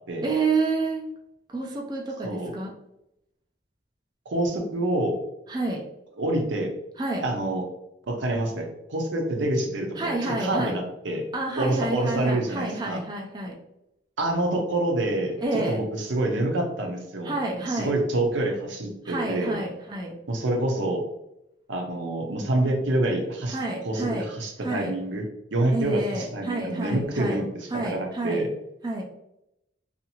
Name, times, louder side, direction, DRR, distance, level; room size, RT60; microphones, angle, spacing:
voice 1, 0.2-1.1 1.5-2.7 5.5-5.8 7.0-7.2 10.0-10.8 11.3-13.6 15.4-15.8 17.2-17.9 19.0-20.1 23.5-24.3 24.6-24.9 25.7-27.4 27.7-28.4 28.8-29.0, right 2 dB, 20° right, -1 dB, 0.4 m, -29 dB
voice 2, 4.3-5.2 6.2-6.7 7.2-7.6 8.1-11.2 11.6-13.0 14.2-17.3 17.7-19.6 20.3-21.0 21.7-23.6 23.8-25.3 25.5-28.5, right 1 dB, 85° right, 2 dB, 0.6 m, -27 dB
2.7 x 2.5 x 2.8 m, 0.85 s
head